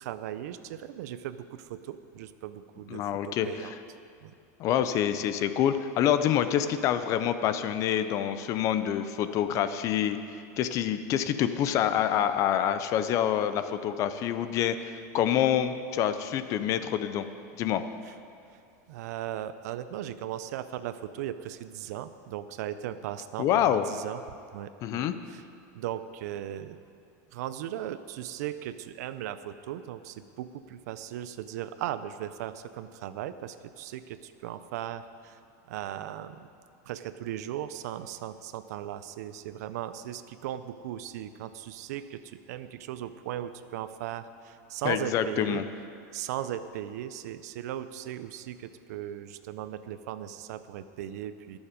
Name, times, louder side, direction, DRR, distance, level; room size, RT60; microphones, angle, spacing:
voice 1, 0.0-3.7 4.2-4.3 18.1-18.2 18.9-25.4 25.7-26.8 27.3-35.4 35.7-36.5 36.9-45.6 46.1-51.6, right 11 dB, 70° right, 12 dB, 0.6 m, -37 dB
voice 2, 2.9-3.7 4.6-17.3 17.6-17.8 23.4-23.8 24.8-25.1 44.8-45.6, left 10 dB, 35° left, 11 dB, 0.6 m, -27 dB
21.0 x 7.2 x 5.1 m, 2.4 s
supercardioid pair, 155°, 9 cm